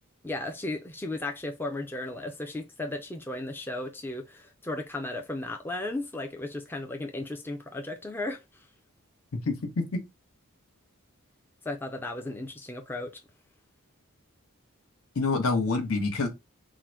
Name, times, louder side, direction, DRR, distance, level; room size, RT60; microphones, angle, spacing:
voice 1, 0.2-8.7 11.6-13.1, left 2 dB, 10° left, 0.4 m, -35 dB
voice 2, 9.5-9.9 15.2-16.3, left 3 dB, 70° left, 0.9 m, -26 dB
3.7 x 2.1 x 4.4 m
head